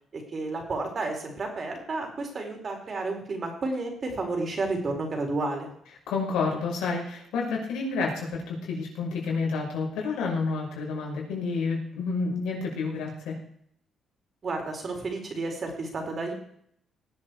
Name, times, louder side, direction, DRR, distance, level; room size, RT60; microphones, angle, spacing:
voice 1, 0.1-5.7 14.4-16.3, right 3 dB, 45° right, 2 dB, 4.6 m, -31 dB
voice 2, 6.1-13.4, left 4 dB, 85° left, -2 dB, 5.9 m, -29 dB
19.5 x 7.8 x 4.8 m, 0.66 s
cardioid pair, 90°, 0 cm